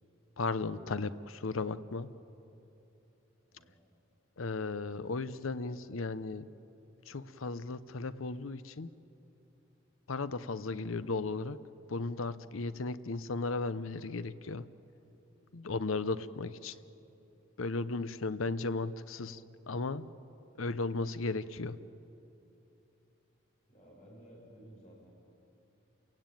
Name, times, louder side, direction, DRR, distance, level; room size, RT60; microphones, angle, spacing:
voice 1, 0.4-2.1 4.4-6.5 7.1-8.9 10.1-11.6 11.9-14.6 15.5-16.7 17.6-19.4 19.7-20.1 20.6-21.8, left 3 dB, 90° left, 14 dB, 0.8 m, -35 dB
voice 2, 23.7-25.1, right 1 dB, 40° left, -4 dB, 6.6 m, -55 dB
30.0 x 16.5 x 9.1 m, 2.9 s
head